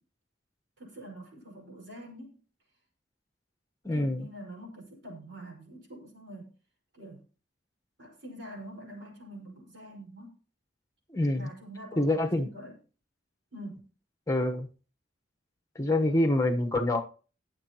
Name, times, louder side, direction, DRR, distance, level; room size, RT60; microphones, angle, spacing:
voice 1, 0.8-2.4 3.9-6.5 6.9-7.2 8.0-10.3 11.3-12.7 13.5-13.9, right 1 dB, 75° right, -1 dB, 5.2 m, -45 dB
voice 2, 3.8-4.3 11.1-11.5 12.0-12.5 14.3-14.7 15.7-17.0, left 1 dB, 15° left, 5 dB, 1.2 m, -26 dB
20.5 x 7.5 x 3.0 m, 0.36 s
head